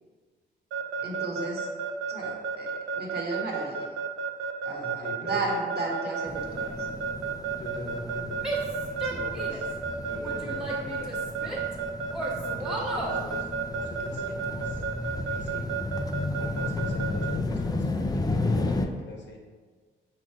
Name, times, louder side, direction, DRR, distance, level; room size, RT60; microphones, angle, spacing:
Keyboard (musical) / Alarm, 0.7-17.3, right 6 dB, 80° right, 0.5 m, -32 dB
voice 1, 1.0-1.7 2.1-3.9 4.6-6.9 9.0-9.2, right 2 dB, 55° right, -1 dB, 1.2 m, -34 dB
voice 2, 4.8-5.4 7.6-8.6 9.2-9.7 10.0-11.6 12.3-15.7 16.4-19.4, left 1 dB, 60° left, 0 dB, 1.0 m, -42 dB
sound 1, 6.3-18.9, left 2 dB, 20° left, 0.4 m, -33 dB
Female speech woman speaking / Yell, 8.4-9.7 10.2-11.7 12.1-13.2, right 2 dB, 5° right, 1.2 m, -34 dB
4.9 x 2.4 x 4.4 m, 1.5 s
supercardioid pair, 60°, 21 cm